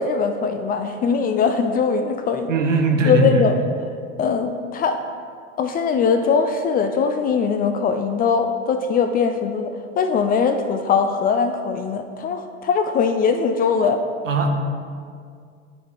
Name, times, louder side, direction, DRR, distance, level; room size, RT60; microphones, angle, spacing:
voice 1, 0.0-2.5 3.1-3.5 4.2-5.0 5.6-14.0, left 5 dB, 25° left, 7 dB, 0.4 m, -21 dB
voice 2, 2.5-3.5 14.3-14.5, right 2 dB, 75° right, 3 dB, 1.0 m, -19 dB
12.5 x 4.4 x 3.0 m, 2.1 s
figure-of-eight pair, 75°, 38 cm